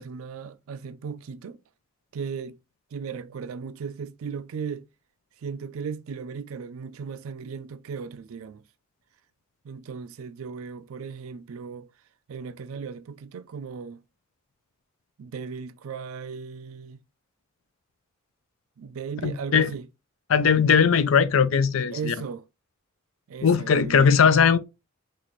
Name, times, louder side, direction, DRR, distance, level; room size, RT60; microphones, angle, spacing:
voice 1, 0.0-1.6 2.1-2.6 2.9-4.9 5.4-8.6 9.6-11.9 12.3-14.0 15.2-17.0 18.8-19.9 21.9-22.4 23.3-24.4, right 6 dB, 80° right, 0.4 m, -36 dB
voice 2, 19.2-19.7 20.3-22.1 23.4-24.6, left 6 dB, 70° left, 0.4 m, -19 dB
4.0 x 2.5 x 3.0 m
head